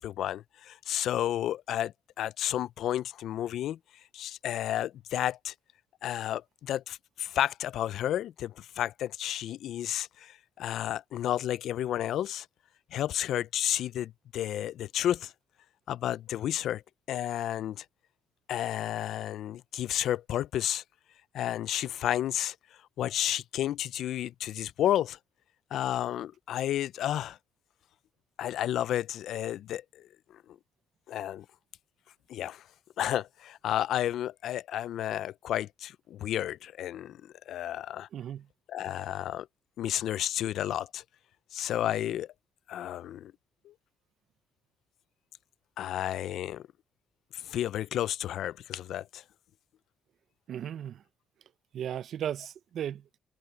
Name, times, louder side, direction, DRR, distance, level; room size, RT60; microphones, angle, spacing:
voice 1, 0.0-1.9 2.2-3.8 4.1-5.5 6.0-12.5 12.9-15.3 15.9-16.8 17.1-17.8 18.5-20.8 21.3-22.6 23.0-25.2 25.7-27.4 28.4-30.1 31.1-31.5 32.3-32.6 33.0-37.2 37.5-38.1 38.7-39.5 39.8-41.0 41.5-42.3 42.7-43.3 43.7-43.8 45.8-46.7 47.3-49.2, left 12 dB, 75° left, 0.4 m, -31 dB
voice 2, 38.1-38.5 50.5-51.0 51.7-53.0, right 10 dB, 60° right, 0.5 m, -36 dB
cardioid pair, 150°, 0 cm